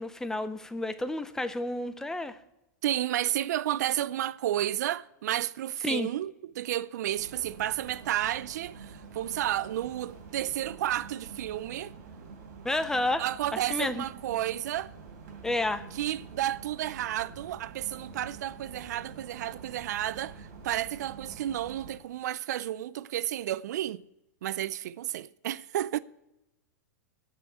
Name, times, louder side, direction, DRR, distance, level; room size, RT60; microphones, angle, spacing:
voice 1, 0.0-2.4 5.8-6.1 12.6-13.2 13.7-14.0 15.4-15.8, left 2 dB, 5° left, 0.6 m, -30 dB
voice 2, 2.8-11.9 13.2-14.9 15.9-24.0 24.4-26.0, right 12 dB, 70° right, 0.4 m, -32 dB
sound 1, 7.1-22.0, right 5 dB, 50° right, 3.5 m, -47 dB
14.0 x 5.6 x 6.8 m
hypercardioid pair, 140°, 9 cm